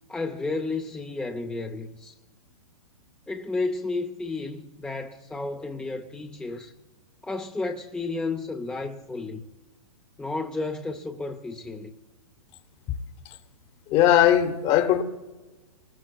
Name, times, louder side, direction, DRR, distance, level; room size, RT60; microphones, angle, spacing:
voice 1, 0.1-2.2 3.3-6.7 7.2-9.5 10.2-11.9, left 3 dB, 5° left, 0.5 m, -32 dB
voice 2, 13.9-15.0, left 11 dB, 30° left, 1.0 m, -19 dB
28.5 x 19.5 x 2.3 m
hypercardioid pair, 120°, 18 cm